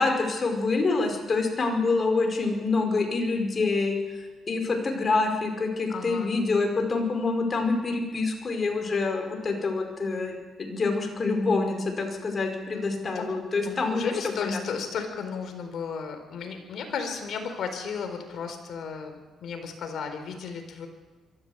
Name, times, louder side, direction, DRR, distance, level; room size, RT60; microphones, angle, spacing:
voice 1, 0.0-4.0 4.5-14.6, left 3 dB, 40° left, 4 dB, 5.3 m, -26 dB
voice 2, 5.9-6.3 13.1-13.3 13.6-20.9, left 6 dB, 65° left, 6 dB, 4.4 m, -34 dB
23.0 x 15.0 x 8.2 m, 1.2 s
cardioid pair, 90°, 0 cm